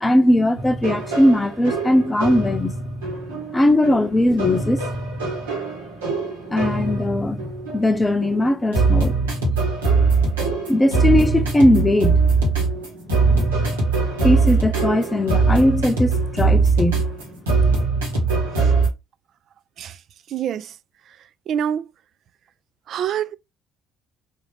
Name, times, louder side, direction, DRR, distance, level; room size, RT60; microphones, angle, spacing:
voice 1, 0.0-2.7 3.5-4.8 6.5-7.4 7.7-9.2 10.7-12.2 14.2-17.0, left 1 dB, 15° left, 0.7 m, -19 dB
sound 1, 0.6-18.9, right 4 dB, 85° right, 1.4 m, -22 dB
voice 2, 20.3-20.7 21.5-21.9 22.9-23.4, right 9 dB, 55° right, 0.4 m, -26 dB
3.6 x 2.7 x 3.3 m
hypercardioid pair, 55°, 0 cm